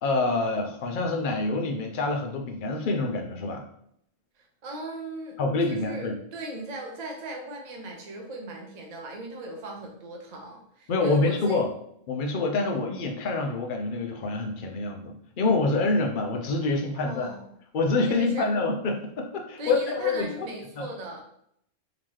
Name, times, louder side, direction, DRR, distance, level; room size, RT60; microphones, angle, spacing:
voice 1, 0.0-3.6 5.4-6.1 10.9-11.7 12.1-17.3 17.7-20.5 20.8-20.9, left 3 dB, 60° left, 2 dB, 0.5 m, -26 dB
voice 2, 4.6-5.4 5.7-11.6 16.9-17.5 18.1-18.5 19.6-21.2, right 1 dB, 40° right, 1 dB, 0.7 m, -38 dB
3.8 x 2.9 x 3.1 m, 0.71 s
omnidirectional pair, 1.5 m